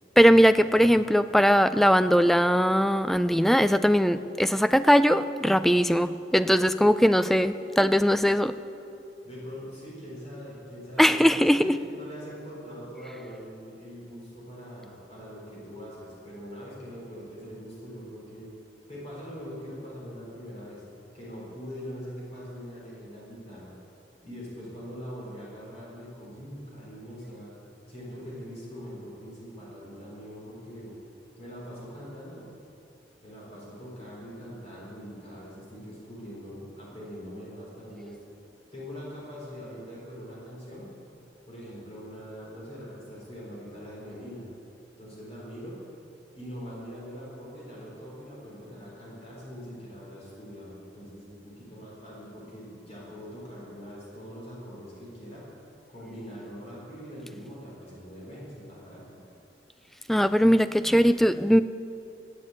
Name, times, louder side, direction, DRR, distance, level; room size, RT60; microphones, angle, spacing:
voice 1, 0.2-8.6 11.0-11.8 60.1-61.6, equal, ahead, 12 dB, 0.3 m, -20 dB
voice 2, 9.2-18.5 18.9-20.8 21.1-23.7 24.2-27.5 27.9-31.0 31.4-32.5 33.2-38.2 38.7-40.9 41.5-44.5 45.0-45.8 46.3-55.4 55.9-59.2, equal, 35° left, -6 dB, 4.1 m, -42 dB
13.0 x 9.8 x 8.2 m, 2.7 s
head